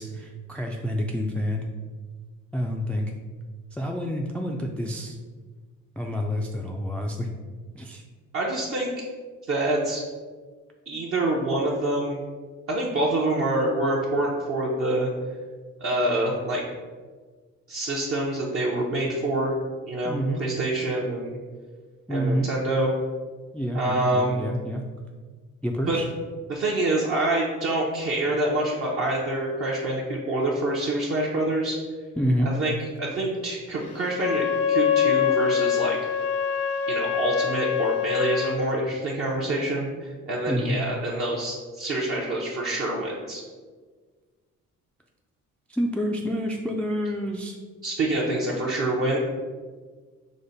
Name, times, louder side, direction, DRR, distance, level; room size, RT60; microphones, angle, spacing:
voice 1, 0.0-1.7 2.5-3.1 3.7-5.2 6.0-7.3 7.7-8.0 20.0-20.4 22.1-22.5 23.5-24.8 25.6-26.1 32.2-32.5 40.5-40.8 45.7-47.6, equal, 5° left, 1 dB, 0.3 m, -28 dB
voice 2, 8.3-9.0 9.5-10.0 10.9-12.2 12.7-15.1 15.8-16.6 17.7-19.5 19.9-21.4 22.1-22.9 23.7-24.4 25.9-26.0 26.5-31.8 32.4-32.7 33.0-36.0 36.9-43.4 47.8-49.2, right 1 dB, 45° right, -4 dB, 0.7 m, -26 dB
Wind instrument woodwind instrument, 34.1-38.6, left 9 dB, 55° left, 0.5 m, -24 dB
5.0 x 2.1 x 3.9 m, 1.5 s
cardioid pair, 90°, 30 cm